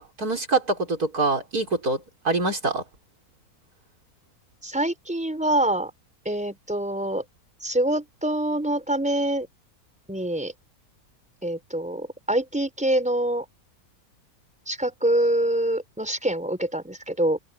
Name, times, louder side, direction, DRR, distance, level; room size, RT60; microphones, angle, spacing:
voice 1, 0.0-2.8, right 3 dB, 75° right, 5.3 m, -25 dB
voice 2, 4.6-5.9 6.2-7.2 7.6-9.5 10.1-10.5 11.4-13.5 14.7-17.4, right 1 dB, 5° right, 4.4 m, -25 dB
omnidirectional pair, 1.6 m